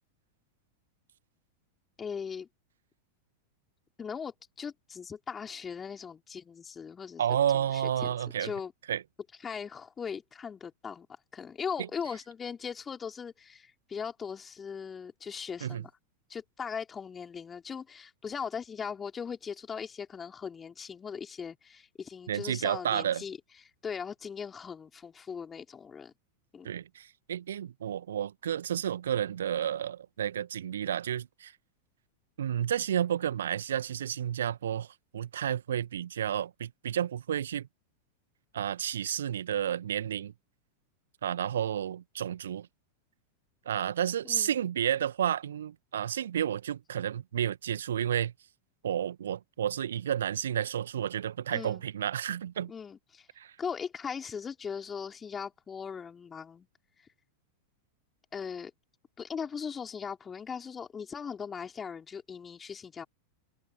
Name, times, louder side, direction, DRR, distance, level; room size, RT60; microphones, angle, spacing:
voice 1, 2.0-2.5 4.0-7.2 7.5-8.7 9.4-11.1 11.3-15.9 16.3-23.4 23.8-26.1 26.5-26.7 44.2-44.5 51.5-51.8 52.7-53.3 53.6-56.7 58.3-58.7 59.2-63.0, left 6 dB, 20° left, 4.6 m, -39 dB
voice 2, 7.2-8.5 8.9-9.0 11.8-11.9 15.6-15.8 22.3-23.2 26.6-31.5 32.4-37.7 38.5-40.3 41.2-42.7 43.6-48.3 48.8-52.7 53.4-53.5, right 10 dB, 65° right, 1.8 m, -31 dB
figure-of-eight pair, 90°, 0 cm